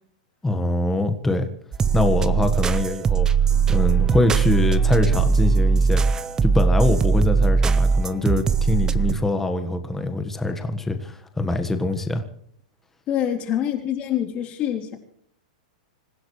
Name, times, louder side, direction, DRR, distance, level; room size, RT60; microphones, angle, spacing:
voice 1, 0.4-1.5 1.9-3.3 3.7-12.2, left 2 dB, 5° left, 1.5 m, -24 dB
sound 1, 1.7-9.1, right 5 dB, 15° right, 0.7 m, -20 dB
voice 2, 13.1-15.0, left 10 dB, 30° left, 3.4 m, -25 dB
27.0 x 16.0 x 3.2 m
hypercardioid pair, 145°, 4 cm